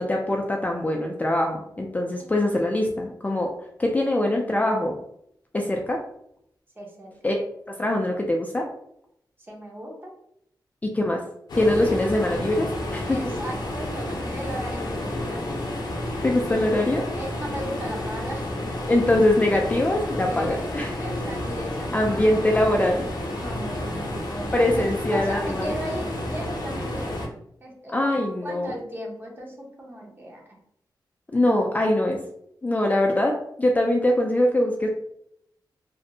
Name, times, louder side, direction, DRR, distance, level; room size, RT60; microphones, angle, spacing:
voice 1, 0.0-3.5 3.8-5.0 5.5-6.0 7.2-7.4 7.8-8.7 10.8-11.2 11.6-13.2 16.2-17.0 18.9-20.9 21.9-23.1 24.5-25.7 27.9-28.7 31.3-32.2 32.6-34.9, left 1 dB, 20° left, 1 dB, 0.3 m, -23 dB
voice 2, 2.2-2.5 6.8-7.1 9.5-10.1 13.0-15.4 17.1-18.7 20.3-22.3 23.3-24.8 25.1-27.3 27.6-30.4, equal, 25° right, -1 dB, 0.7 m, -37 dB
sound 1, 11.5-27.3, left 1 dB, 65° left, 0.6 m, -30 dB
2.5 x 2.0 x 2.6 m, 0.73 s
wide cardioid pair, 95°, 8 cm